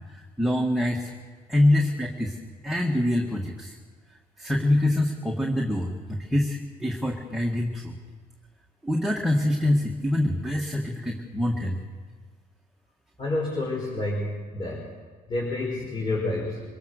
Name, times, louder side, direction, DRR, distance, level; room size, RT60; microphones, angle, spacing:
voice 1, 0.4-1.1 1.5-2.4 2.6-3.8 4.4-7.9 8.8-11.8, left 1 dB, ahead, 0 dB, 1.8 m, -25 dB
voice 2, 13.2-14.9 15.3-16.6, left 2 dB, 30° left, -4 dB, 5.0 m, -29 dB
25.0 x 16.5 x 6.6 m, 1.5 s
cardioid pair, 120°, 16 cm